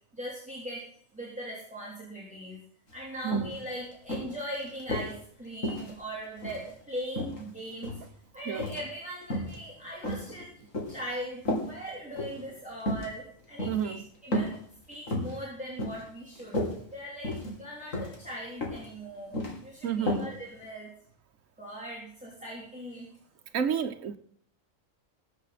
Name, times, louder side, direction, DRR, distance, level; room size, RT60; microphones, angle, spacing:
voice 1, 0.1-0.8 1.1-2.6 2.9-7.9 8.3-10.5 10.9-14.6 14.9-16.6 16.9-17.3 17.6-20.9 21.6-23.1, equal, 5° right, 3.0 m, -40 dB
sound 1, 2.9-3.0 3.3-3.6 4.1-5.1 5.6-6.7 7.1-8.1 8.5-8.9 9.2-9.6 10.0-11.0 11.5-11.7 12.1-12.4 12.8-13.1 13.6-13.8 14.3-14.6 14.9-15.4 15.8-16.1 16.4-16.7 17.2-17.6 17.9-18.2 18.6-18.9 19.1-19.6 20.1-20.3 20.6-20.7, equal, 70° left, 3.1 m, -32 dB
voice 2, 13.7-14.0 19.8-20.3 23.5-24.2, right 8 dB, 70° right, 1.3 m, -30 dB
20.5 x 7.5 x 4.1 m
omnidirectional pair, 1.4 m